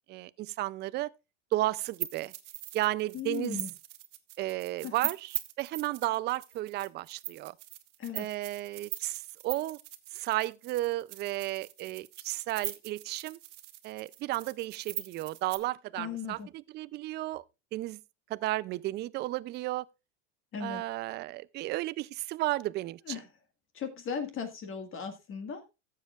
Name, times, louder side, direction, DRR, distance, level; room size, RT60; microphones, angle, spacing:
voice 1, 0.1-1.1 1.5-2.3 2.7-3.6 4.4-7.5 8.1-9.8 10.1-13.4 13.8-17.4 17.7-18.0 18.3-19.9 20.6-23.2, right 17 dB, 30° right, 0.4 m, -33 dB
sound 1, 1.9-15.6, right 15 dB, 90° right, 1.1 m, -41 dB
voice 2, 3.1-3.7 4.8-4.9 8.0-8.3 16.0-16.5 20.5-20.8 23.1-23.2 23.7-25.7, left 7 dB, 35° left, 1.7 m, -37 dB
14.5 x 7.4 x 2.4 m
supercardioid pair, 115°, 35 cm